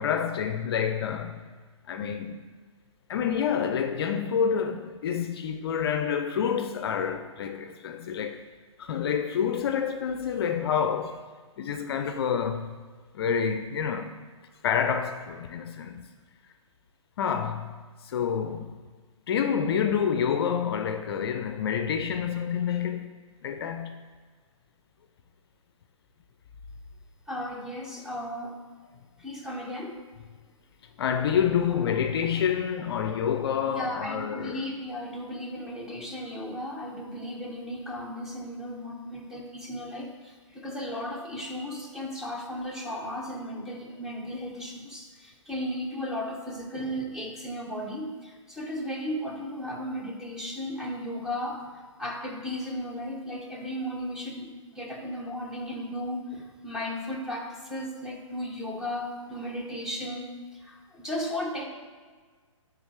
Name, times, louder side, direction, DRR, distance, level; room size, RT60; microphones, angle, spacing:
voice 1, 0.0-1.4 1.9-2.4 3.1-8.4 8.8-11.2 11.6-12.7 13.1-14.1 14.6-16.1 17.2-17.7 18.0-18.7 19.3-23.1 23.4-23.9 31.0-34.7, left 7 dB, 50° left, 0.4 m, -28 dB
voice 2, 27.3-28.6 29.2-30.0 33.7-51.7 52.0-61.7, equal, 5° right, 0.7 m, -35 dB
9.3 x 3.7 x 3.2 m
hypercardioid pair, 135°, 17 cm